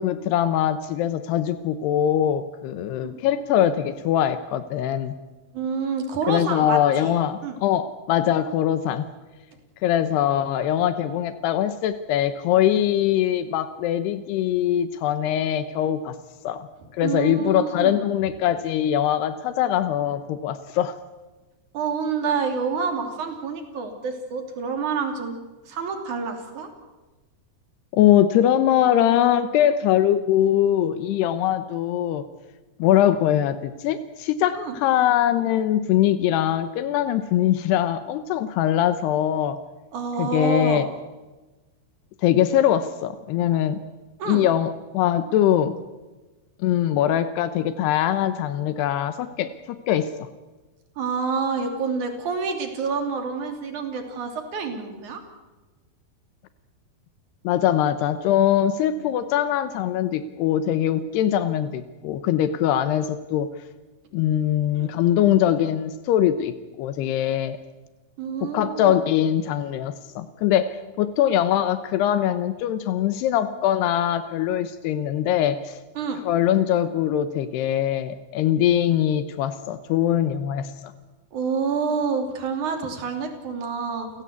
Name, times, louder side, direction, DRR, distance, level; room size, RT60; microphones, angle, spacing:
voice 1, 0.0-5.1 6.3-9.1 9.8-16.2 16.4-16.7 16.9-21.0 27.9-32.3 32.8-39.6 40.2-40.9 42.2-43.8 44.3-45.8 46.6-50.3 57.4-63.5 64.1-67.6 68.4-75.8 76.3-80.7, left 11 dB, 85° left, 12 dB, 3.0 m, -22 dB
voice 2, 5.5-7.1 7.4-7.6 16.8-18.0 21.7-25.4 25.7-26.7 34.5-34.8 39.9-40.9 44.2-44.5 51.0-55.2 64.7-64.9 68.2-69.0 76.0-76.2 81.3-84.1, right 5 dB, 50° right, 5 dB, 4.2 m, -28 dB
29.5 x 16.5 x 8.2 m, 1.2 s
omnidirectional pair, 4.7 m